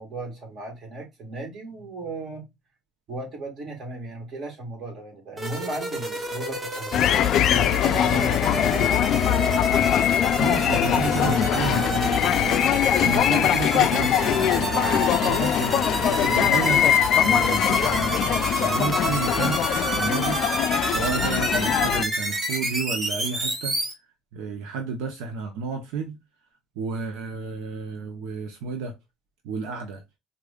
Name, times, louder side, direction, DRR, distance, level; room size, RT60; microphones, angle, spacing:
voice 1, 0.0-2.4 3.1-8.9 11.2-12.0, right 2 dB, 50° right, 1.9 m, -35 dB
sound 1, 5.4-23.9, right 1 dB, 20° right, 1.1 m, -29 dB
sound 2, 6.9-22.0, left 10 dB, 55° left, 0.3 m, -22 dB
voice 2, 10.4-12.6 13.0-20.4 20.9-23.7 24.3-26.2 26.8-28.9 29.4-30.0, right 5 dB, 85° right, 0.8 m, -31 dB
4.9 x 2.5 x 2.3 m
cardioid pair, 125°, 0 cm